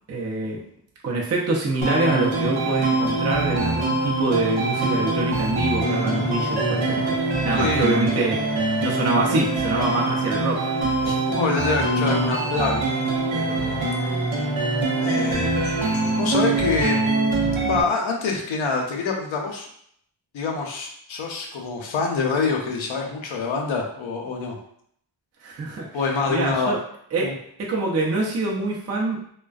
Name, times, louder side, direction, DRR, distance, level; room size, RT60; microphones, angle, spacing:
voice 1, 0.1-0.6 1.0-8.4 8.8-10.7 25.4-25.9 26.3-26.8 27.1-27.3 27.6-29.2, right 2 dB, 35° right, -3 dB, 0.5 m, -25 dB
sound 1, 1.8-17.8, right 2 dB, 90° right, 0.7 m, -24 dB
voice 2, 7.6-8.0 11.0-12.8 13.3-14.2 15.0-17.0 17.7-19.7 20.3-24.6 25.9-26.8 27.2-27.3, left 4 dB, 80° left, 1 dB, 0.6 m, -26 dB
2.4 x 2.2 x 2.3 m, 0.67 s
cardioid pair, 65°, 46 cm